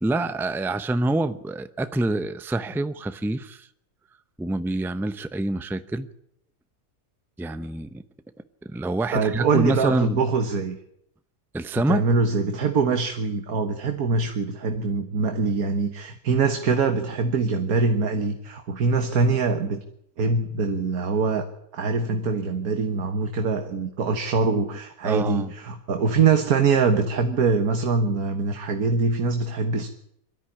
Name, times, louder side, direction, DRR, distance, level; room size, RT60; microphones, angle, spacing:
voice 1, 0.0-3.7 4.4-6.1 7.4-7.9 8.7-10.2 11.5-12.0 25.0-25.5, right 2 dB, ahead, 11 dB, 0.6 m, -26 dB
voice 2, 9.1-10.8 11.7-19.8 20.2-21.5 21.7-29.9, right 4 dB, 90° right, 6 dB, 1.8 m, -23 dB
23.0 x 13.5 x 9.9 m, 0.75 s
omnidirectional pair, 1.5 m